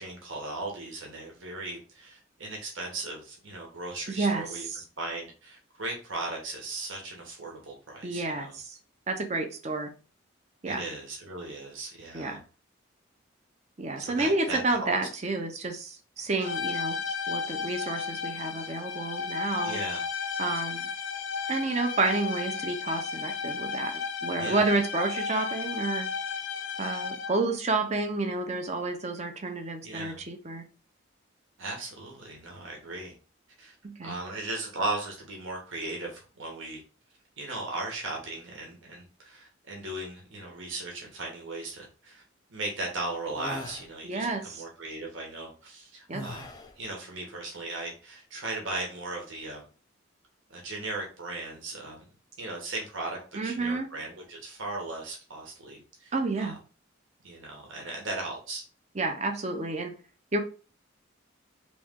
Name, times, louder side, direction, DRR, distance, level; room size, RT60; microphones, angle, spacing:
voice 1, 0.0-4.7 5.0-8.6 10.7-12.4 14.0-14.9 19.6-20.0 24.4-24.7 29.8-30.2 31.6-33.1 33.6-33.7 34.0-36.8 37.4-42.2 42.5-49.6 50.5-52.0 52.4-56.5 57.2-58.6, right 2 dB, 70° right, 1.1 m, -37 dB
voice 2, 4.1-4.8 8.0-8.8 9.1-9.9 10.6-10.8 12.1-12.4 13.8-17.0 17.3-19.8 20.4-20.9 21.5-26.1 26.8-30.7 33.8-34.2 44.0-44.6 46.1-46.3 53.3-53.9 56.1-56.6 58.9-59.9 60.3-60.4, right 3 dB, 35° right, 0.6 m, -30 dB
sound 1, 16.4-27.5, left 5 dB, 65° left, 0.5 m, -34 dB
sound 2, 43.3-43.9 46.1-46.8, left 2 dB, 20° left, 0.4 m, -40 dB
3.1 x 3.1 x 3.6 m
head